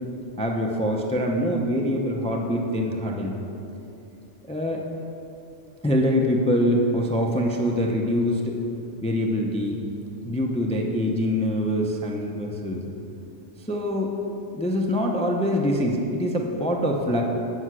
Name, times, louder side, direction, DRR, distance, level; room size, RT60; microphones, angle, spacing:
voice 1, 0.4-3.4 4.5-4.8 5.8-8.6 9.0-9.8 10.3-12.8 13.7-14.1 14.5-17.2, equal, 10° left, 1 dB, 0.3 m, -24 dB
7.9 x 5.5 x 6.1 m, 2.8 s
omnidirectional pair, 1.2 m